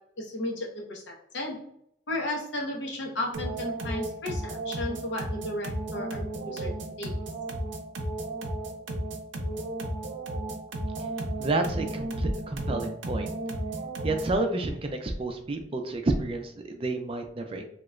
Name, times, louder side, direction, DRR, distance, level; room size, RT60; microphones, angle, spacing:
voice 1, 0.2-1.6 2.1-6.7 7.0-7.1, left 1 dB, 80° left, 0 dB, 0.8 m, -34 dB
sound 1, 3.3-14.4, right 1 dB, 85° right, 0.5 m, -34 dB
voice 2, 11.4-13.3 14.0-17.6, right 2 dB, 30° right, 5 dB, 0.4 m, -30 dB
2.9 x 2.1 x 3.6 m, 0.72 s
head